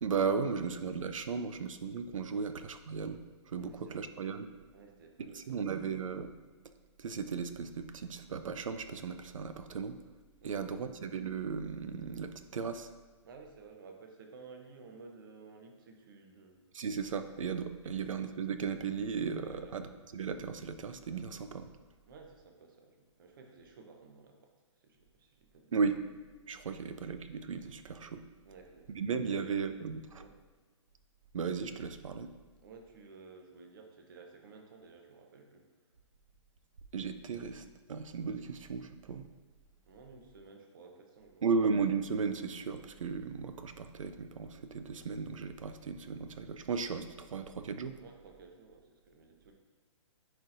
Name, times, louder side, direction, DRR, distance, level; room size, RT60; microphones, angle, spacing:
voice 1, 0.0-4.5 5.3-6.3 7.0-9.9 10.4-12.9 16.7-21.7 25.7-26.0 26.5-28.2 28.9-30.2 31.3-32.3 36.9-39.2 41.4-48.0, right 5 dB, 90° right, 10 dB, 0.6 m, -36 dB
voice 2, 3.6-4.1 4.7-5.6 10.4-10.7 13.2-16.6 17.8-18.2 19.4-19.8 22.1-24.5 24.8-25.7 26.7-26.9 28.5-29.4 30.1-30.3 32.6-35.6 39.9-41.4 48.0-49.5, right 4 dB, 40° right, 3 dB, 0.9 m, -54 dB
10.0 x 4.3 x 2.6 m, 1.4 s
hypercardioid pair, 165°, 16 cm